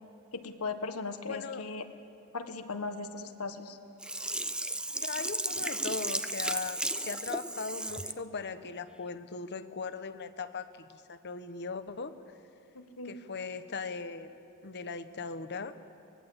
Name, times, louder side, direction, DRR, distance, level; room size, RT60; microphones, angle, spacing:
voice 1, 0.3-1.8 2.3-3.8 12.7-13.2, left 3 dB, 80° left, 8 dB, 1.4 m, -38 dB
voice 2, 1.3-1.6 4.9-12.3 13.0-14.3 14.6-15.8, left 4 dB, 50° left, 11 dB, 1.0 m, -39 dB
Sink (filling or washing), 4.0-8.2 8.6-8.7, right 1 dB, 5° right, 0.5 m, -34 dB
24.0 x 19.5 x 8.0 m, 2.7 s
head